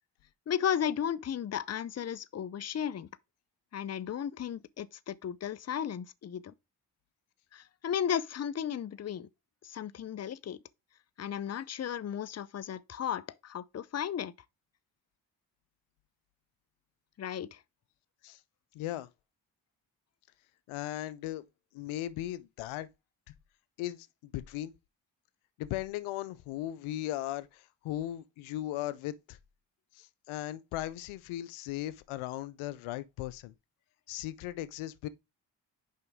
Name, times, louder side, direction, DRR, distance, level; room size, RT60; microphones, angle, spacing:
voice 1, 0.5-3.1 3.7-6.5 7.5-9.3 9.6-10.6 11.2-14.3 17.2-17.6, left 9 dB, 35° left, 0.5 m, -34 dB
voice 2, 18.7-19.1 20.7-21.4 21.7-22.9 23.8-24.7 25.6-29.4 29.9-33.5 34.1-35.1, left 14 dB, 90° left, 0.5 m, -37 dB
6.6 x 5.2 x 3.5 m
supercardioid pair, 40°, 47 cm